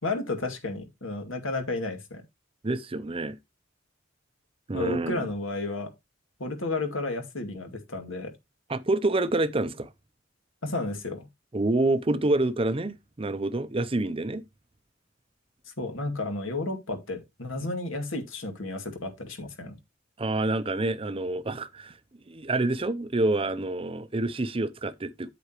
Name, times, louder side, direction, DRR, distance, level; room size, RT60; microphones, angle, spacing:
voice 1, 0.0-2.2 4.7-5.9 6.4-8.3 10.6-11.3 15.8-19.8, left 2 dB, 85° left, 2.2 m, -32 dB
voice 2, 2.6-3.4 4.7-5.3 8.7-9.9 11.5-14.4 20.2-21.9 22.3-25.3, right 2 dB, 30° right, 0.6 m, -27 dB
8.6 x 8.1 x 2.9 m
head